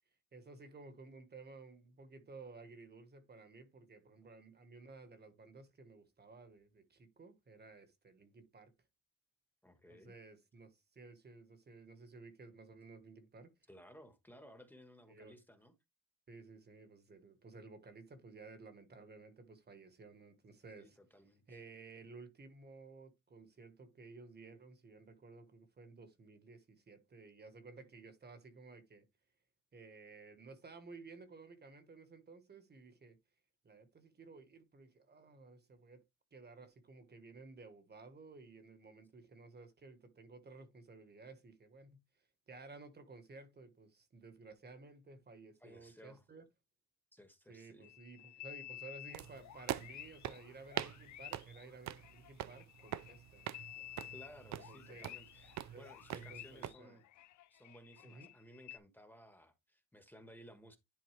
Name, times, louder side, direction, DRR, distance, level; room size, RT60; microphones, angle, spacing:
voice 1, 0.3-8.7 9.9-13.5 15.1-15.4 16.3-21.0 21.5-29.0 29.7-33.2 33.6-36.0 36.3-46.4 47.5-53.9 54.5-55.1 55.7-57.0 58.0-58.3, right 3 dB, 30° right, 1.4 m, -55 dB
voice 2, 9.6-10.1 13.7-15.7 20.8-21.6 45.6-46.2 47.1-47.9 54.1-57.1 57.5-60.8, equal, 5° left, 1.3 m, -58 dB
sound 1, 47.8-58.8, left 14 dB, 65° left, 0.6 m, -53 dB
sound 2, 49.1-56.7, right 12 dB, 65° right, 0.5 m, -45 dB
10.5 x 4.2 x 3.3 m
cardioid pair, 125°, 31 cm